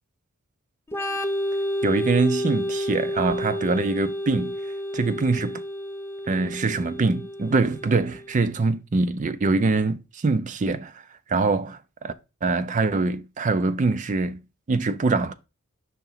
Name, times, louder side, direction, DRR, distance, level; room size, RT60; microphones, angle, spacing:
Organ, 0.9-8.4, equal, 10° left, 0.6 m, -30 dB
voice 1, 1.8-4.5 4.9-5.6 6.3-10.9 11.3-12.1 12.4-14.4 14.7-15.3, right 3 dB, 35° right, 0.4 m, -24 dB
5.7 x 3.0 x 5.5 m
head